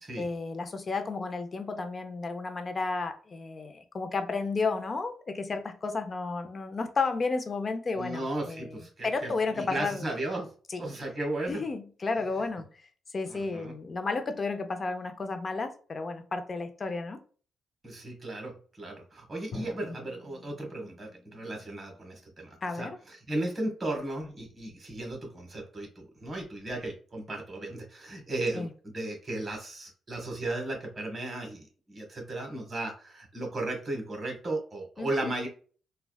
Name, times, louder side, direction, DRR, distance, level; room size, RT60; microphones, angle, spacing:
voice 1, 0.0-10.1 10.7-10.8 11.5-12.7 13.1-17.2 19.9-20.0 22.6-23.0 28.5-28.7 35.0-35.3, left 3 dB, 40° left, 7 dB, 0.6 m, -32 dB
voice 2, 7.9-10.5 10.8-11.7 13.3-13.7 17.8-35.5, right 2 dB, 30° right, 1 dB, 1.3 m, -35 dB
Drum, 19.5-23.3, left 2 dB, 60° left, 1.2 m, -48 dB
3.3 x 2.3 x 2.3 m, 0.41 s
cardioid pair, 80°, 0 cm